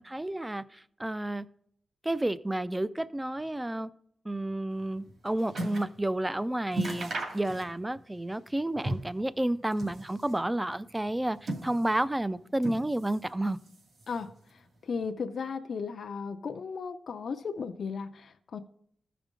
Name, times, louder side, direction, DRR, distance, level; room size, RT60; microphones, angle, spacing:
voice 1, 0.0-1.5 2.0-3.9 4.3-13.6, right 1 dB, 10° right, 16 dB, 0.3 m, -31 dB
sound 1, 4.8-6.0 6.3-6.4 6.7-8.0 8.3-9.2 9.6-10.5 11.1-12.1 12.6-13.3 13.6-14.3 15.0-15.1, right 1 dB, 60° right, 2.1 m, -36 dB
voice 2, 14.8-18.6, left 5 dB, 60° left, 8 dB, 0.5 m, -35 dB
15.0 x 5.1 x 3.7 m, 0.67 s
wide cardioid pair, 160°, 0 cm